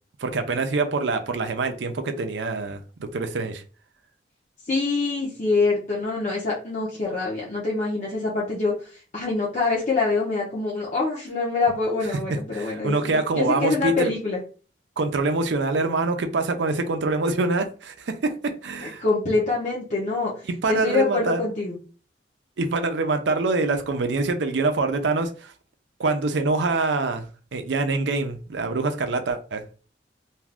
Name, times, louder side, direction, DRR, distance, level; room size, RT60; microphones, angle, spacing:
voice 1, 0.2-3.6 12.5-14.1 15.0-19.0 20.5-21.5 22.6-25.5 26.0-27.2 27.5-29.6, right 3 dB, 80° right, 0.5 m, -25 dB
voice 2, 4.7-8.7 9.1-14.4 18.8-20.3 20.7-21.8, left 3 dB, 40° left, 0.7 m, -25 dB
2.6 x 2.4 x 3.3 m
head